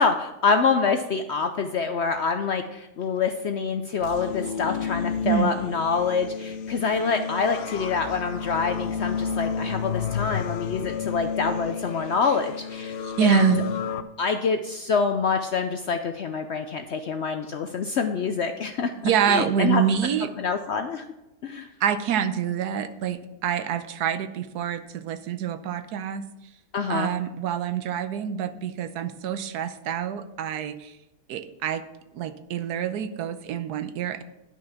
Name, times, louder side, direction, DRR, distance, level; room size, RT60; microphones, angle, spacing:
voice 1, 0.0-13.0 13.2-13.5 14.2-19.8 20.2-21.0 21.4-21.7 26.7-27.1, left 5 dB, 65° left, 7 dB, 0.6 m, -26 dB
sound 1, 4.0-14.0, left 6 dB, 85° left, 1.2 m, -31 dB
voice 2, 13.0-13.6 19.0-20.3 21.8-26.2 26.9-30.9 31.3-31.8 32.1-34.2, right 8 dB, 80° right, 11 dB, 1.2 m, -26 dB
10.5 x 6.0 x 5.7 m, 0.94 s
omnidirectional pair, 1.7 m